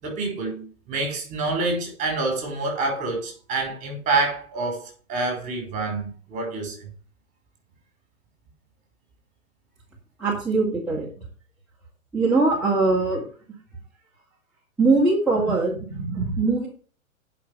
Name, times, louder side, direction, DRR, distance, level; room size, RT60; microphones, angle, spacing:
voice 1, 0.0-6.9, right 3 dB, 20° right, 5.7 m, -27 dB
voice 2, 10.2-11.1 12.1-13.2 14.8-16.7, right 3 dB, ahead, 2.4 m, -21 dB
10.0 x 6.0 x 6.7 m
hypercardioid pair, 140°, 41 cm